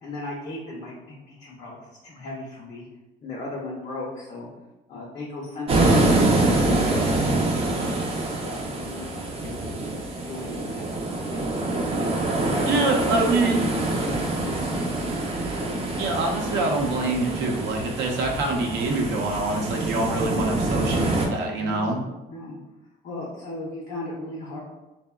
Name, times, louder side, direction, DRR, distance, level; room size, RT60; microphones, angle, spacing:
voice 1, 0.0-2.9 3.2-4.5 4.9-9.7 10.3-10.9 11.3-15.1 15.5-15.9 21.6-22.0 22.3-22.6 23.0-24.6, left 2 dB, 40° left, -3 dB, 0.5 m, -36 dB
sound 1, 5.7-21.3, right 2 dB, 35° right, 0.5 m, -25 dB
voice 2, 12.7-13.7 15.9-22.0, right 2 dB, 75° right, 1 dB, 0.6 m, -25 dB
3.5 x 2.0 x 2.3 m, 1.0 s
cardioid pair, 125°, 18 cm